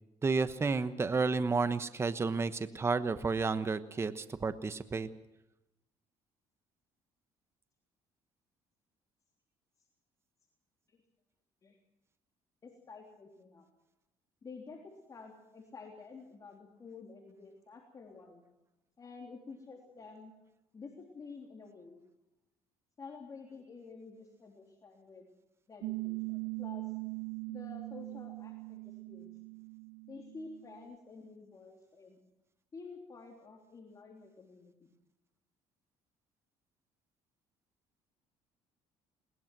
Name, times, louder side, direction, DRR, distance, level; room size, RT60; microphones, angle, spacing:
voice 1, 0.2-5.1, right 4 dB, 25° right, 12 dB, 1.1 m, -31 dB
voice 2, 12.6-13.7 14.4-18.4 19.0-20.3 20.7-22.0 23.0-25.3 25.7-26.9 27.5-29.3 30.1-32.2 32.7-34.7, left 4 dB, 30° left, 1 dB, 3.4 m, -50 dB
Piano, 25.8-30.9, right 27 dB, 70° right, 0.7 m, -41 dB
21.5 x 20.5 x 6.1 m, 0.93 s
cardioid pair, 110°, 11 cm